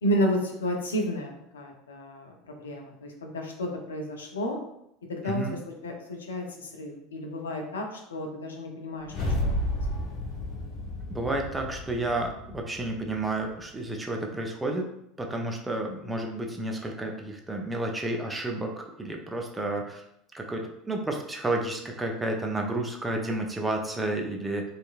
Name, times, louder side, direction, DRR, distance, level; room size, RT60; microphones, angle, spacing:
voice 1, 0.0-4.6 5.1-9.1 9.4-9.6, equal, 75° left, 2 dB, 0.4 m, -31 dB
voice 2, 5.2-5.6 11.1-14.8 15.2-20.0 20.3-24.6, right 2 dB, 10° right, 1 dB, 0.4 m, -31 dB
sound 1, 9.0-13.4, left 1 dB, 50° left, 0.7 m, -32 dB
2.7 x 2.4 x 2.3 m, 0.78 s
figure-of-eight pair, 75°, 0 cm